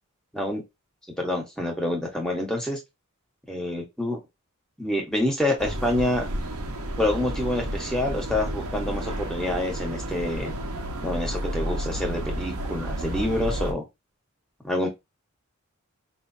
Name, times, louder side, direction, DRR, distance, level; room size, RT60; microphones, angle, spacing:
voice 1, 1.2-2.8 3.5-4.2 4.8-6.3 7.0-10.5 11.0-13.9 14.6-14.9, left 1 dB, 5° left, 1 dB, 1.6 m, -27 dB
sound 1, 5.6-13.7, right 1 dB, 85° right, 1.1 m, -31 dB
5.5 x 2.8 x 2.8 m, 0.20 s
head